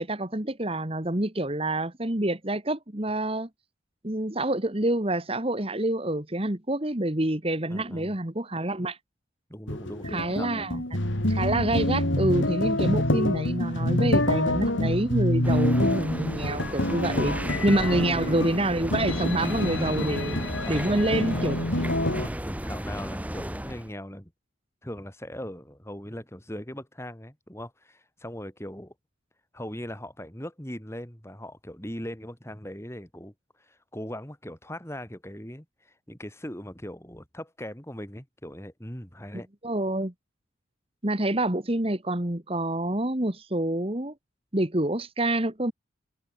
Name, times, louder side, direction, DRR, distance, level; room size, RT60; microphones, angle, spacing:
voice 1, 0.0-3.5 4.0-9.0 10.0-10.8 11.3-17.3 17.6-20.4 20.7-21.8 39.6-40.1 41.0-44.1 44.5-45.7, right 1 dB, 30° right, 1.7 m, -27 dB
voice 2, 7.7-8.1 9.5-10.7 17.7-18.4 20.6-21.3 22.0-24.3 24.8-28.9 29.5-33.3 33.7-39.5, equal, 15° left, 5.4 m, -39 dB
sound 1, 9.7-22.3, left 1 dB, 70° left, 3.7 m, -27 dB
sound 2, 15.4-23.9, equal, 5° right, 2.1 m, -34 dB
head